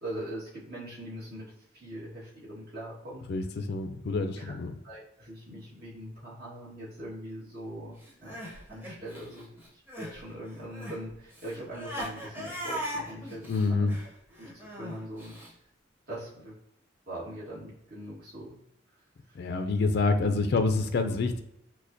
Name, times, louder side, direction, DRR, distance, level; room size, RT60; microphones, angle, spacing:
voice 1, 0.0-3.2 4.4-4.5 4.8-7.9 8.2-8.4 8.7-13.9 14.4-15.3 16.1-16.5 17.1-18.6 19.3-19.4, right 1 dB, 50° right, -7 dB, 1.5 m, -41 dB
voice 2, 3.3-4.7 13.5-13.9 19.4-21.4, left 3 dB, 55° left, 7 dB, 0.3 m, -27 dB
Crying sobbing, 8.0-10.2 10.5-15.5, equal, 10° right, 0.9 m, -39 dB
6.4 x 2.1 x 2.6 m, 0.81 s
head